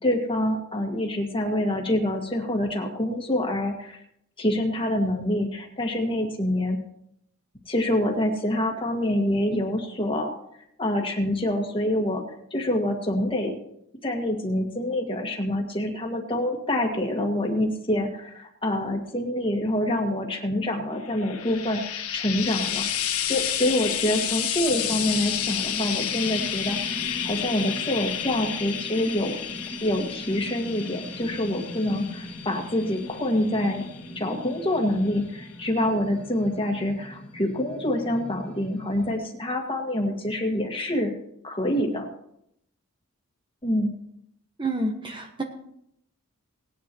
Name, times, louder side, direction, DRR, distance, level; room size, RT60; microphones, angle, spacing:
voice 1, 0.0-4.0 4.4-6.8 7.7-10.3 10.8-12.2 12.5-13.5 14.0-22.9 23.3-26.9 27.2-29.4 29.8-33.9 34.2-41.1 41.4-42.1 43.6-43.9, left 1 dB, 25° left, 1 dB, 2.0 m, -26 dB
Frying (food), 21.0-34.5 35.4-35.5, left 10 dB, 85° left, 1.4 m, -31 dB
sound 1, 24.7-39.2, left 1 dB, 5° left, 2.3 m, -40 dB
voice 2, 44.6-45.4, right 2 dB, 25° right, 3 dB, 1.2 m, -28 dB
19.0 x 10.5 x 3.1 m, 0.74 s
head